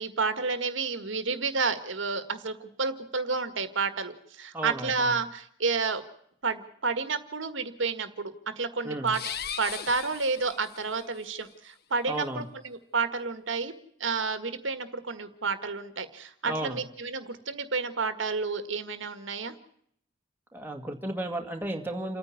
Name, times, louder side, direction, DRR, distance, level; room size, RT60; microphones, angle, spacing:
voice 1, 0.0-6.0 6.4-9.2 9.6-13.7 14.0-19.5, right 4 dB, 75° right, 10 dB, 1.7 m, -30 dB
voice 2, 4.5-5.2 8.8-9.1 12.1-12.5 16.4-16.8 20.5-22.2, right 1 dB, 10° right, 3 dB, 2.0 m, -34 dB
sound 1, 9.1-11.1, left 8 dB, 50° left, 1.1 m, -38 dB
28.5 x 9.6 x 9.7 m, 0.69 s
head